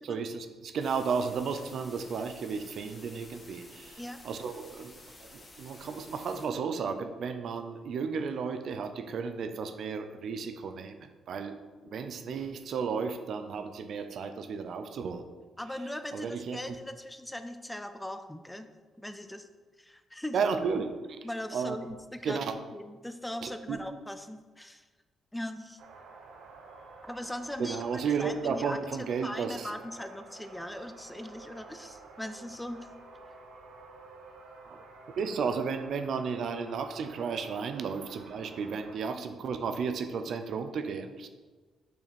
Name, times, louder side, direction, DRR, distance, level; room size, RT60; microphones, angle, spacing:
voice 1, 0.0-4.9 5.2-15.3 16.1-16.7 20.3-21.0 21.5-21.8 22.2-22.6 23.4-23.8 27.6-29.7 34.7-34.8 35.2-41.3, right 5 dB, 60° right, 9 dB, 0.6 m, -33 dB
sound 1, 0.8-6.5, left 2 dB, 25° left, 1.3 m, -52 dB
voice 2, 15.6-18.7 19.0-19.5 19.8-20.4 21.2-22.4 22.7-24.8 25.3-25.8 27.0-27.9 28.2-32.9 39.2-39.3, left 1 dB, 5° left, 8 dB, 0.4 m, -40 dB
sound 2, 25.8-39.0, right 3 dB, 75° right, 0.9 m, -51 dB
7.0 x 5.8 x 4.2 m, 1.4 s
cardioid pair, 130°, 0 cm